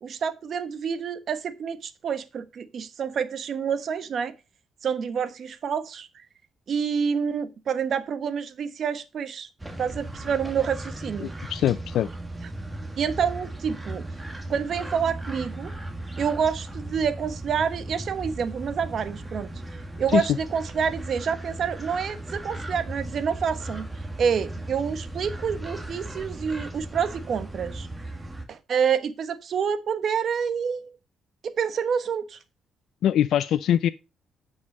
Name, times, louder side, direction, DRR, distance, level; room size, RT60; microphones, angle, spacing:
voice 1, 0.0-4.3 4.8-6.1 6.7-9.5 9.8-11.3 13.0-14.1 14.5-15.7 16.2-19.5 20.0-23.9 24.2-27.9 28.5-30.9 31.4-32.4, right 7 dB, 55° right, 1.1 m, -28 dB
sound 1, 9.6-28.5, right 1 dB, 15° right, 2.0 m, -37 dB
voice 2, 11.2-12.1 20.1-20.3 33.0-33.9, left 10 dB, 75° left, 0.4 m, -23 dB
9.8 x 5.5 x 5.1 m
cardioid pair, 90°, 0 cm